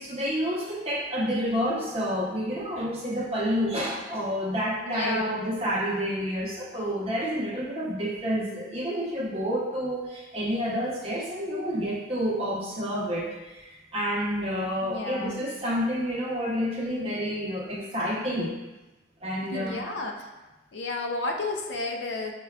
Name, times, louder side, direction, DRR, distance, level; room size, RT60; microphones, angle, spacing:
voice 1, 0.0-18.5 19.2-19.8, equal, 35° right, -5 dB, 0.7 m, -29 dB
voice 2, 4.8-5.4 14.8-15.4 19.5-20.3 20.7-22.3, left 2 dB, 80° left, 2 dB, 0.5 m, -32 dB
6.1 x 2.2 x 2.3 m, 1.1 s
head